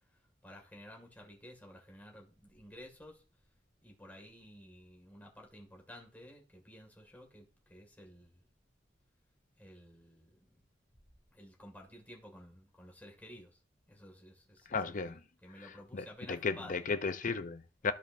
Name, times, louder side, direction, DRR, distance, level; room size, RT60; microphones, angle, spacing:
voice 1, 0.4-3.2 3.8-8.5 9.6-10.6 11.3-13.6 13.9-16.9, left 1 dB, 10° left, 2.2 m, -53 dB
voice 2, 14.7-15.2 15.9-17.9, left 4 dB, 45° left, 0.6 m, -35 dB
14.5 x 5.1 x 2.7 m
head